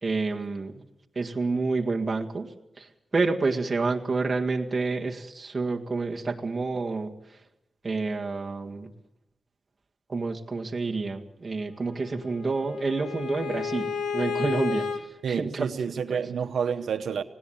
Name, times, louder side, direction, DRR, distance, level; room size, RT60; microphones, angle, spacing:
voice 1, 0.0-0.8 1.2-7.4 7.8-8.9 10.1-16.2, right 3 dB, 30° right, 1.8 m, -29 dB
Bowed string instrument, 11.9-15.0, left 6 dB, 90° left, 1.9 m, -32 dB
voice 2, 15.2-17.2, right 7 dB, 80° right, 1.0 m, -29 dB
19.0 x 18.0 x 8.8 m
wide cardioid pair, 130°, 0 cm